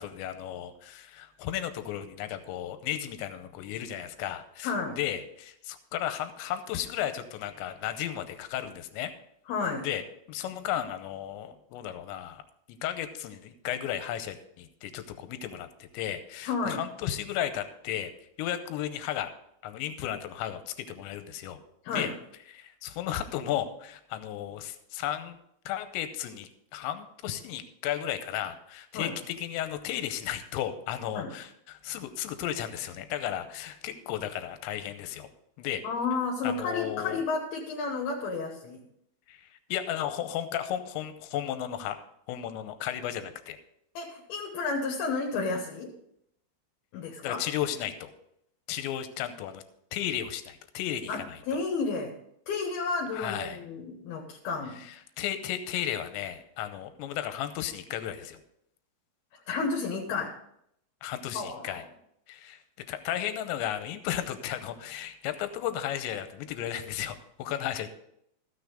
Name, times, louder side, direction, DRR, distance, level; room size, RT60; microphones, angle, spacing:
voice 1, 0.0-9.1 9.8-10.0 10.3-12.4 12.7-18.1 18.4-19.3 19.6-21.6 21.9-22.1 22.5-25.4 25.7-35.3 35.6-35.8 36.4-37.2 39.3-42.0 42.3-43.6 47.2-48.1 48.7-49.6 49.9-51.4 53.1-53.6 54.8-58.4 61.0-61.8 62.3-62.6 62.9-67.9, left 11 dB, 85° left, 10 dB, 3.0 m, -34 dB
voice 2, 4.6-5.0 9.5-9.9 16.5-16.8 21.8-22.1 28.9-29.1 31.1-31.3 35.8-38.8 44.0-45.9 46.9-47.4 51.1-52.1 52.5-54.8 59.3-60.3 61.3-61.8, left 4 dB, 70° left, 1 dB, 2.7 m, -31 dB
14.0 x 6.4 x 5.1 m, 0.75 s
omnidirectional pair, 5.3 m